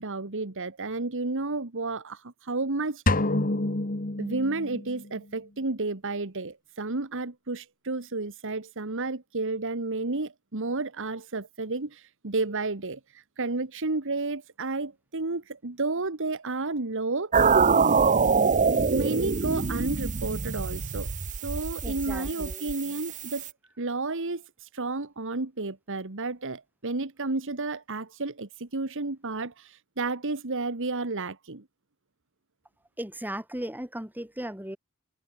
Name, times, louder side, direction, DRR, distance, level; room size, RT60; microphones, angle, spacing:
voice 1, 0.0-3.2 4.2-17.5 18.9-23.5 23.8-31.6, right 3 dB, 60° right, 1.7 m, -32 dB
sound 1, 3.1-5.1, left 2 dB, 40° left, 1.7 m, -27 dB
sound 2, 17.3-23.5, right 5 dB, 35° right, 0.7 m, -25 dB
voice 2, 21.8-22.7 33.0-34.8, right 1 dB, 10° right, 7.0 m, -36 dB
head